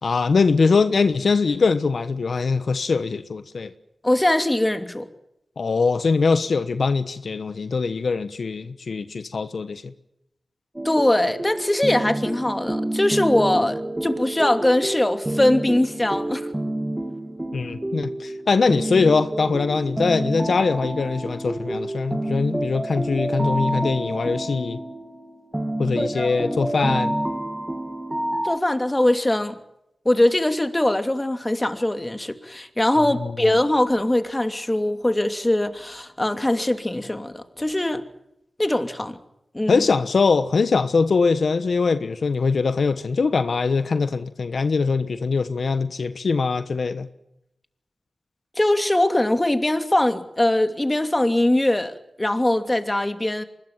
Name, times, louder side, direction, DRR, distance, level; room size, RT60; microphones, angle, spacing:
voice 1, 0.0-3.7 5.6-9.9 17.5-24.8 25.8-27.1 33.2-33.5 39.7-47.1, left 4 dB, 75° left, 1.2 m, -22 dB
voice 2, 4.0-5.1 10.8-16.5 26.0-26.6 26.8-27.0 28.4-29.6 30.0-38.1 38.6-39.2 39.5-39.8 48.6-53.4, left 1 dB, 20° left, 2.8 m, -22 dB
sound 1, 10.7-28.6, right 1 dB, 20° right, 2.6 m, -28 dB
24.5 x 21.0 x 7.4 m
cardioid pair, 55°, 0 cm